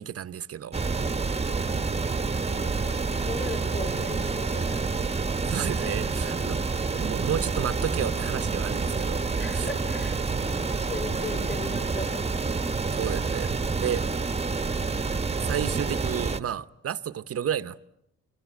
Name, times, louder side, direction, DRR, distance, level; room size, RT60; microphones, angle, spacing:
voice 1, 0.0-0.7 5.5-6.6 6.9-9.2 9.6-9.7 12.9-14.0 15.4-17.9, right 9 dB, 50° right, 0.9 m, -31 dB
sound 1, 0.7-16.4, right 4 dB, 20° right, 1.1 m, -28 dB
voice 2, 0.8-4.9 5.6-6.5 9.4-12.8, left 3 dB, 35° left, 4.2 m, -40 dB
26.5 x 23.0 x 8.3 m
cardioid pair, 90°, 30 cm